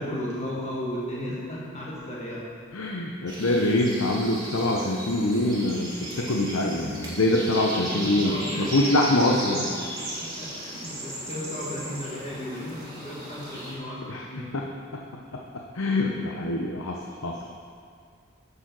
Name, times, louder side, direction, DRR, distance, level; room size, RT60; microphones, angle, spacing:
voice 1, 0.0-2.4 7.9-14.5, left 1 dB, 30° left, -6 dB, 1.5 m, -35 dB
voice 2, 2.7-9.7 14.1-14.6 15.3-15.4 15.7-17.5, left 1 dB, 80° left, 0 dB, 0.8 m, -25 dB
sound 1, 3.3-13.7, right 1 dB, 20° right, 1.8 m, -36 dB
8.6 x 7.0 x 6.0 m, 2.2 s
head